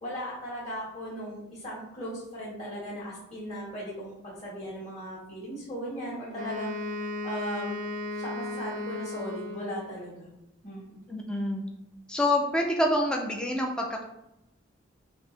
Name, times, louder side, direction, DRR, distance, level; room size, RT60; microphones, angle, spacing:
voice 1, 0.0-6.7 7.2-7.8 8.1-10.3 10.6-11.0, equal, 35° left, -8 dB, 1.7 m, -37 dB
Wind instrument woodwind instrument, 6.3-10.0, left 2 dB, 40° right, 0.6 m, -35 dB
voice 2, 11.1-11.7 12.1-14.0, left 1 dB, 5° left, 0 dB, 0.5 m, -27 dB
5.2 x 2.9 x 3.3 m, 0.88 s
head